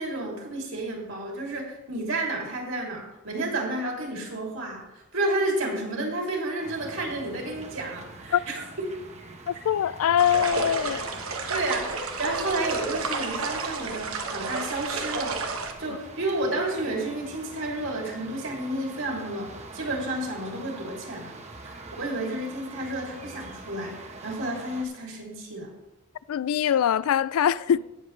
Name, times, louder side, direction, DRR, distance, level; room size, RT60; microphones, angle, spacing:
voice 1, 0.0-4.8 5.1-8.6 11.5-15.4 15.8-21.4 21.6-24.0 24.2-25.7 27.7-27.8, right 2 dB, 65° right, 2.8 m, -31 dB
sound 1, 6.6-24.8, right 3 dB, 30° right, 1.0 m, -44 dB
voice 2, 9.5-11.0 26.3-27.8, left 9 dB, 85° left, 0.3 m, -23 dB
sound 2, 10.2-15.7, right 4 dB, 85° right, 1.2 m, -31 dB
18.0 x 7.2 x 3.2 m
head